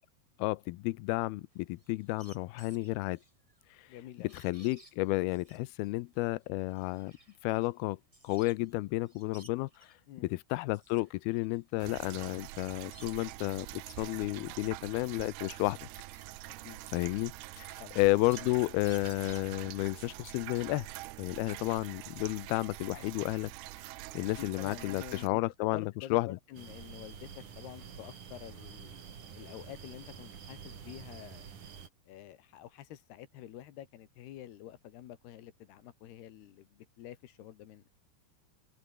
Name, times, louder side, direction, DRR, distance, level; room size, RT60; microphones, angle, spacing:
voice 1, 0.4-3.2 4.3-7.1 7.4-8.0 8.2-9.7 10.2-15.8 16.9-20.9 21.2-23.5 24.1-26.4, left 20 dB, 90° left, 2.2 m, -32 dB
sound 1, 1.5-8.7 9.0-10.0 10.5-13.4 13.9-19.8, right 1 dB, 5° right, 4.9 m, -59 dB
voice 2, 3.9-4.3 10.1-10.4 16.6-16.8 17.8-18.0 24.4-25.4 25.7-29.0 29.4-31.5 32.1-37.8, left 12 dB, 70° left, 3.4 m, -48 dB
sound 2, 11.8-25.3, right 17 dB, 75° right, 2.6 m, -45 dB
sound 3, 26.5-31.9, right 7 dB, 50° right, 4.3 m, -48 dB
omnidirectional pair, 5.1 m